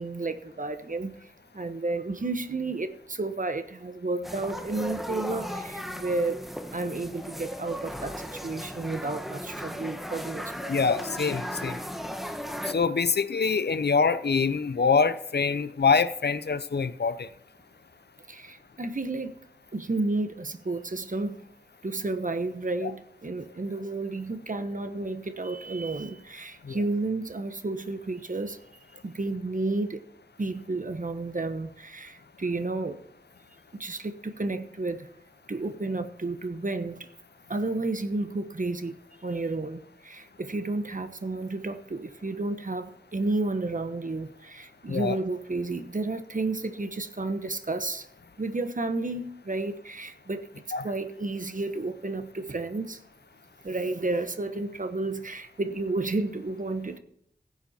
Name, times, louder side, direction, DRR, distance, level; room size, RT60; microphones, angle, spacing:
voice 1, 0.0-6.4 6.7-10.5 18.3-19.4 19.7-21.4 21.8-28.6 29.0-30.0 30.4-33.0 33.7-35.1 35.5-37.1 37.5-48.1 48.4-50.5 50.8-53.0 53.6-57.0, right 2 dB, 50° right, 9 dB, 1.1 m, -31 dB
sound 1, 4.2-12.7, equal, ahead, 1.2 m, -36 dB
voice 2, 10.7-11.8 12.7-17.3 22.8-22.9 26.7-26.8 44.9-45.2 50.7-50.9, left 5 dB, 80° left, 13 dB, 0.7 m, -25 dB
15.5 x 8.3 x 4.3 m, 0.74 s
wide cardioid pair, 65°, 17 cm